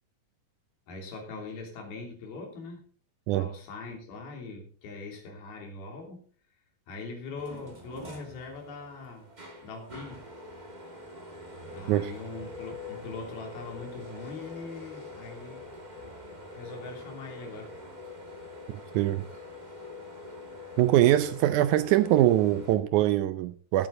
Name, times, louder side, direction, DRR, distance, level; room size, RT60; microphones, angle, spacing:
voice 1, 0.9-2.8 3.3-6.2 6.9-9.3 9.6-10.2 11.7-15.7 16.5-17.7, left 3 dB, 80° left, 4.9 m, -41 dB
sound 1, 7.4-22.8, left 2 dB, 20° right, 1.4 m, -44 dB
voice 2, 18.7-19.3 20.8-23.9, right 14 dB, 90° right, 1.7 m, -23 dB
17.5 x 8.7 x 3.9 m
omnidirectional pair, 4.3 m